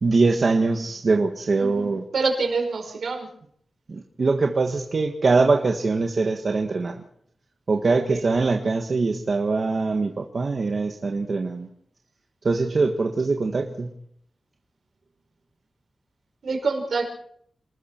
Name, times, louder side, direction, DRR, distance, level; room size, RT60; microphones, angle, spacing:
voice 1, 0.0-2.0 3.9-7.0 7.7-11.7 12.4-13.9, right 3 dB, 45° right, 2 dB, 1.6 m, -23 dB
voice 2, 2.1-3.3 7.8-8.3 16.4-17.0, right 4 dB, 70° right, 3 dB, 5.0 m, -26 dB
28.0 x 20.0 x 4.6 m, 0.65 s
wide cardioid pair, 170°, 0 cm